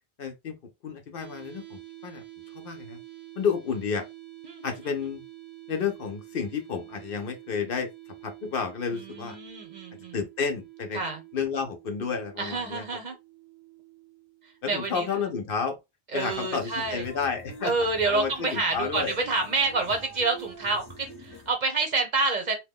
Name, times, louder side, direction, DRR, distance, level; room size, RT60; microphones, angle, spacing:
voice 1, 0.2-0.6 0.8-2.2 2.6-3.0 3.4-4.1 4.6-5.2 5.7-7.9 8.2-9.4 10.1-11.0 11.3-12.8 14.6-15.8 16.1-19.1, left 6 dB, 65° left, 0.8 m, -31 dB
sound 1, 1.2-15.1, right 18 dB, 80° right, 1.0 m, -48 dB
voice 2, 4.4-4.9 8.9-10.2 10.9-11.2 12.4-13.2 14.7-15.2 16.1-17.1 17.6-22.6, right 3 dB, 45° right, 0.8 m, -28 dB
sound 2, 16.3-21.5, right 1 dB, 25° left, 0.9 m, -45 dB
2.9 x 2.2 x 3.5 m
omnidirectional pair, 1.1 m